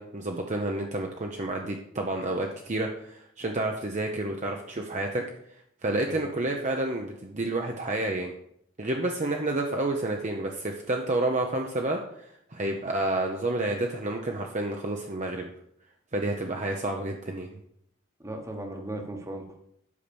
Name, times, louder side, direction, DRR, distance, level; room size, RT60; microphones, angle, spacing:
voice 1, 0.0-5.3 5.8-8.3 8.8-15.5 16.1-17.6, right 2 dB, 35° right, 2 dB, 0.7 m, -30 dB
voice 2, 18.2-19.6, right 1 dB, 15° right, 4 dB, 1.2 m, -37 dB
8.5 x 5.8 x 6.9 m, 0.72 s
head